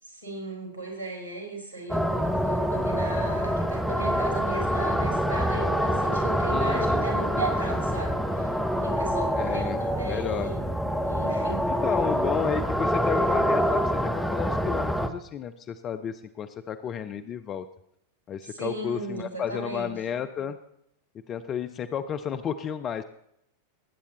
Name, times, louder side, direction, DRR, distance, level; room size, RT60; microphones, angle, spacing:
voice 1, 0.0-8.6 8.8-10.7 11.0-11.7 18.4-19.9, right 2 dB, 85° left, -1 dB, 4.8 m, -37 dB
sound 1, 1.9-15.1, equal, ahead, 1.0 m, -26 dB
voice 2, 6.5-7.0 9.3-9.8 10.1-10.5 11.7-17.7 18.3-20.6 21.3-23.0, left 8 dB, 30° left, 10 dB, 0.6 m, -32 dB
sound 2, 7.4-11.8 12.0-12.4 13.1-13.2, right 5 dB, 60° right, 0.8 m, -41 dB
19.5 x 8.5 x 4.1 m, 0.74 s
figure-of-eight pair, 90°, 0 cm